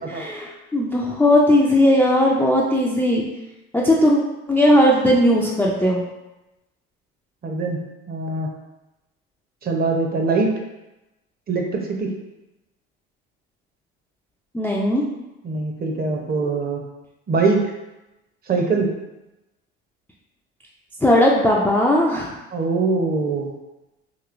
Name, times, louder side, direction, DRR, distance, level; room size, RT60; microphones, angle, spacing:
voice 1, 0.1-3.3 3.7-4.2 4.5-6.0 14.5-15.0 21.0-22.3, left 1 dB, 5° left, -4 dB, 0.3 m, -17 dB
voice 2, 7.4-8.5 9.6-10.5 11.5-12.1 15.4-16.8 17.3-17.7 18.5-18.9 22.5-23.5, right 3 dB, 30° right, 2 dB, 0.6 m, -22 dB
3.0 x 2.8 x 2.5 m, 0.99 s
hypercardioid pair, 75°, 31 cm